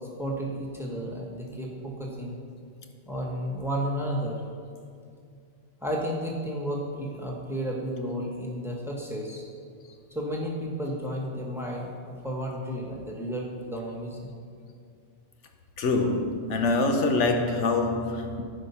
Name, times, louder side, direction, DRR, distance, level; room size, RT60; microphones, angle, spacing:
voice 1, 0.2-2.4 3.1-4.4 5.8-9.4 10.1-14.3, equal, ahead, 1.3 m, -32 dB
voice 2, 15.8-18.4, left 3 dB, 75° left, 1.1 m, -25 dB
14.0 x 5.2 x 5.6 m
omnidirectional pair, 1.2 m